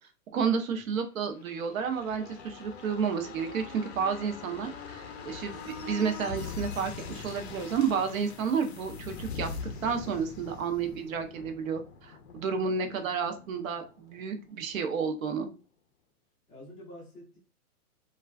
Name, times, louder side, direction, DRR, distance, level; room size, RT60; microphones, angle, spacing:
voice 1, 0.3-9.5 9.8-15.5, right 6 dB, 65° right, 7 dB, 0.6 m, -31 dB
sound 1, 1.3-14.8 15.1-15.2, left 5 dB, 50° left, 0.5 m, -42 dB
voice 2, 16.5-17.4, left 1 dB, ahead, -14 dB, 0.5 m, -48 dB
3.1 x 2.3 x 2.2 m, 0.34 s
hypercardioid pair, 160°, 44 cm